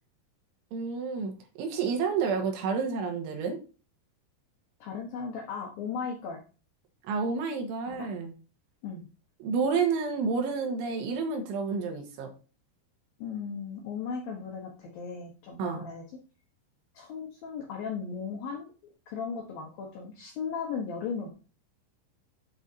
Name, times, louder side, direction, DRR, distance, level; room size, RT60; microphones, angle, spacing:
voice 1, 0.7-3.6 7.1-8.3 9.4-12.3 15.6-15.9, right 5 dB, 80° right, 4 dB, 3.7 m, -30 dB
voice 2, 4.8-6.4 7.9-8.1 8.8-9.1 13.2-16.1 16.9-18.7 19.1-21.3, left 6 dB, 70° left, 1 dB, 2.2 m, -36 dB
8.1 x 7.8 x 2.7 m, 0.34 s
omnidirectional pair, 5.5 m